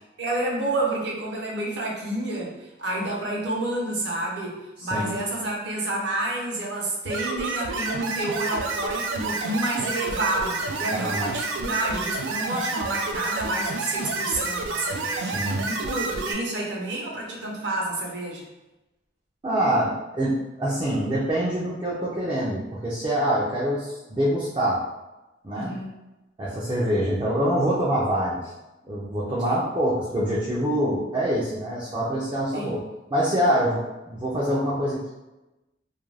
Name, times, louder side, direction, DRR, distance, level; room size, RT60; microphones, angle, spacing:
voice 1, 0.2-15.4 15.6-18.4 25.5-25.9 29.5-29.6 32.5-32.8, right 1 dB, 60° right, -2 dB, 0.7 m, -29 dB
voice 2, 4.8-5.1 10.9-11.3 15.1-15.6 19.4-24.8 25.4-25.7 26.4-28.4 28.8-32.8 33.1-35.1, equal, 25° right, -6 dB, 0.4 m, -25 dB
sound 1, 7.1-16.3, right 3 dB, 90° right, 0.4 m, -29 dB
2.4 x 2.2 x 3.1 m, 1.0 s
head